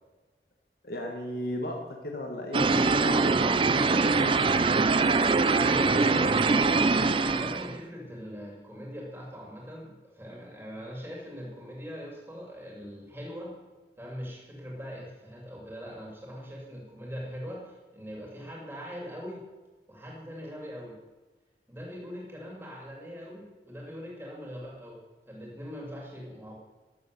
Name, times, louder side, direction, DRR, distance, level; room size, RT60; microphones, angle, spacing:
voice 1, 0.8-3.7, left 1 dB, 55° left, 1 dB, 1.5 m, -35 dB
sound 1, 2.5-7.8, right 4 dB, 30° right, 0.4 m, -23 dB
voice 2, 5.6-6.6 7.0-13.5 14.0-19.4 19.9-20.9 21.7-25.0 25.3-26.5, equal, 15° right, -2 dB, 2.7 m, -41 dB
12.5 x 6.9 x 6.8 m, 1.2 s
head